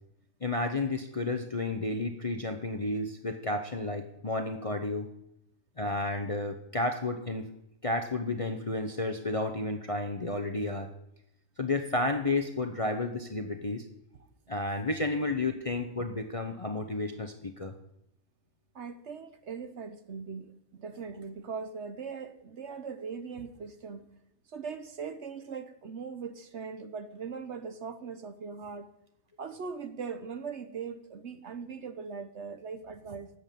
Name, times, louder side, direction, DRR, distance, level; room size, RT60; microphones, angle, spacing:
voice 1, 0.4-5.1 5.8-7.5 7.8-10.9 11.6-13.8 14.5-17.7, left 2 dB, 30° left, 0.7 m, -31 dB
voice 2, 18.7-24.0 24.5-28.9 29.4-33.3, right 5 dB, 55° right, 1.1 m, -40 dB
12.0 x 7.9 x 7.6 m
omnidirectional pair, 1.5 m